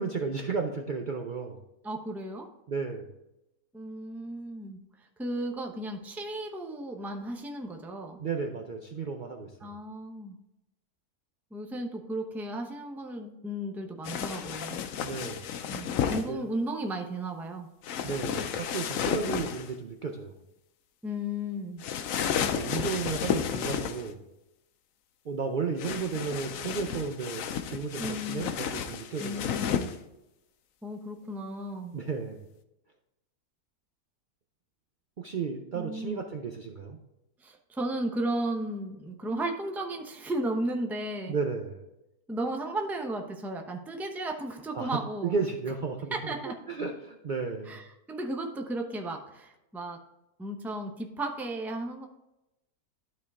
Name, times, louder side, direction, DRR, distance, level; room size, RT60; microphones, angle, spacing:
voice 1, 0.0-1.6 2.7-3.1 8.2-9.7 15.0-15.5 16.3-16.5 18.0-20.3 22.3-24.2 25.3-29.7 31.9-32.4 35.2-37.0 41.3-41.8 44.7-46.3 46.7-47.8, right 5 dB, 85° right, 3 dB, 0.4 m, -33 dB
voice 2, 1.8-2.5 3.7-8.2 9.6-10.4 11.5-14.9 15.7-17.7 19.3-19.5 21.0-21.8 28.0-28.5 29.2-29.9 30.8-32.0 35.7-36.2 37.4-41.4 42.3-45.4 46.1-46.6 47.7-50.0 50.4-52.1, right 1 dB, ahead, 3 dB, 0.4 m, -34 dB
sound 1, 14.0-16.3 17.8-19.7 21.8-24.1 25.8-30.0, left 8 dB, 65° left, 0.9 m, -32 dB
12.0 x 4.5 x 3.5 m, 0.91 s
omnidirectional pair, 1.6 m